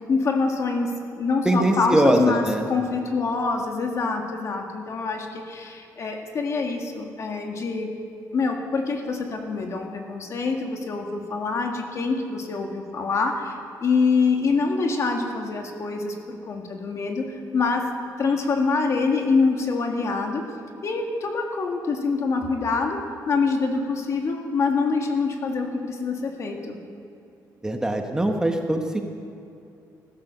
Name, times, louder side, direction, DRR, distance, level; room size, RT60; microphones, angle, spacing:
voice 1, 0.1-7.9 8.3-17.9 18.2-20.5 20.8-26.8, left 4 dB, 45° left, 3 dB, 1.8 m, -25 dB
voice 2, 1.4-2.6 27.6-29.0, right 1 dB, 10° right, 4 dB, 1.0 m, -22 dB
15.5 x 13.5 x 6.7 m, 2.7 s
cardioid pair, 145°, 7 cm